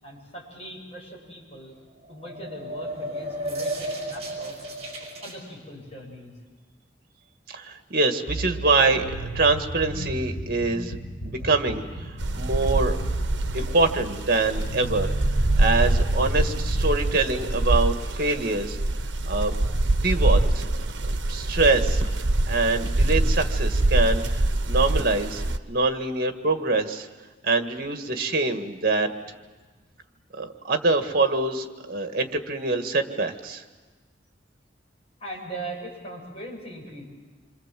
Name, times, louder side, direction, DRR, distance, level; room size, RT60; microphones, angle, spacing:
voice 1, 0.0-1.7 2.1-4.5 5.2-6.3 35.2-37.0, right 1 dB, 35° left, -2 dB, 8.0 m, -40 dB
sound 1, 2.0-5.4, right 1 dB, 35° right, 6.2 m, -33 dB
voice 2, 7.5-13.0 13.5-15.1 15.6-18.8 19.3-19.5 20.0-22.0 22.5-24.4 24.7-27.1 27.4-29.1 30.4-33.6, right 3 dB, 55° right, 6 dB, 1.8 m, -25 dB
sound 2, 8.3-16.9, right 1 dB, 65° left, 7.0 m, -34 dB
sound 3, 12.2-25.6, right 1 dB, 75° right, 1.0 m, -24 dB
27.0 x 25.5 x 7.6 m, 1.3 s
head